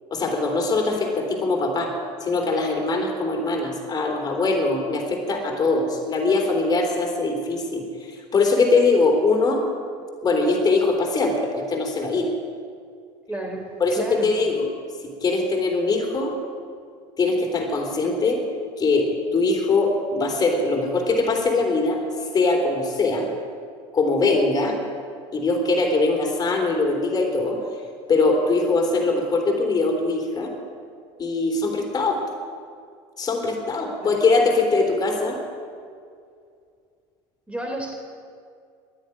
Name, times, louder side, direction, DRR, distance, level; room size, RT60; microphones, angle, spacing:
voice 1, 0.1-1.9 2.2-9.6 10.2-12.3 13.8-14.7 15.0-16.3 17.2-18.4 18.8-23.3 23.9-24.8 25.3-27.6 28.1-30.5 31.2-32.2 33.2-35.4, left 3 dB, 30° left, 2 dB, 3.4 m, -22 dB
voice 2, 13.3-14.3 34.0-34.2 37.5-37.9, right 1 dB, 10° right, 2 dB, 3.5 m, -32 dB
11.0 x 10.0 x 9.9 m, 2.3 s
supercardioid pair, 95°, 13 cm